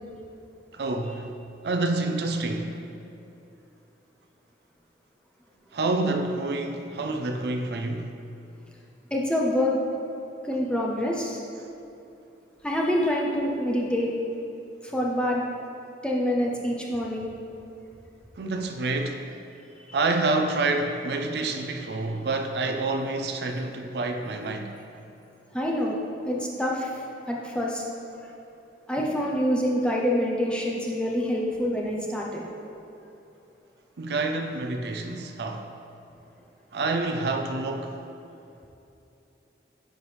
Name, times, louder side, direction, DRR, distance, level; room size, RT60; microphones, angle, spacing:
voice 1, 0.7-1.4 1.6-2.9 5.7-8.2 18.4-19.3 19.9-24.8 34.0-35.7 36.7-38.0, right 2 dB, 65° right, 0.5 m, -28 dB
voice 2, 9.1-9.7 10.4-11.4 12.6-14.1 14.8-15.4 16.0-17.3 21.4-21.5 25.5-26.0 26.2-27.8 28.9-32.4, left 1 dB, 5° left, 0.7 m, -26 dB
10.5 x 4.6 x 3.4 m
head